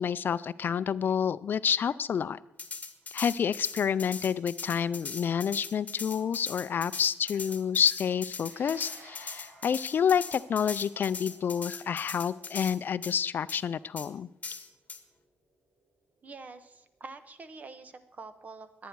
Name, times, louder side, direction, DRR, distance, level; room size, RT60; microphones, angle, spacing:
voice 1, 0.0-2.4 3.1-14.3, left 7 dB, 55° left, 16 dB, 0.4 m, -29 dB
sound 1, 2.6-12.8 13.0-13.1 13.5-13.6 14.0-14.1 14.4-15.0, left 5 dB, 35° left, 1.5 m, -40 dB
sound 2, 8.3-16.9, right 1 dB, 70° right, 5.2 m, -57 dB
voice 2, 16.2-18.9, right 3 dB, 40° right, 11 dB, 1.2 m, -46 dB
22.0 x 9.3 x 4.7 m, 0.85 s
cardioid pair, 90°, 4 cm